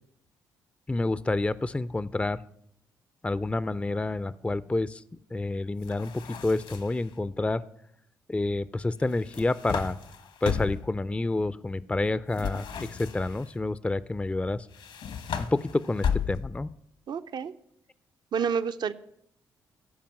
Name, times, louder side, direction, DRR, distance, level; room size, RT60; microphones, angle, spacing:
voice 1, 0.9-2.4 3.2-5.0 5.3-7.6 8.3-10.0 10.4-14.7 15.4-16.7, left 2 dB, 15° left, 17 dB, 0.4 m, -29 dB
sound 1, 5.8-7.1 9.1-10.9 12.3-13.5 14.7-16.7, left 7 dB, 70° left, 1.2 m, -34 dB
voice 2, 17.1-17.5 18.3-18.9, right 6 dB, 55° right, 11 dB, 0.6 m, -29 dB
15.0 x 5.2 x 7.5 m, 0.74 s
hypercardioid pair, 50°, 9 cm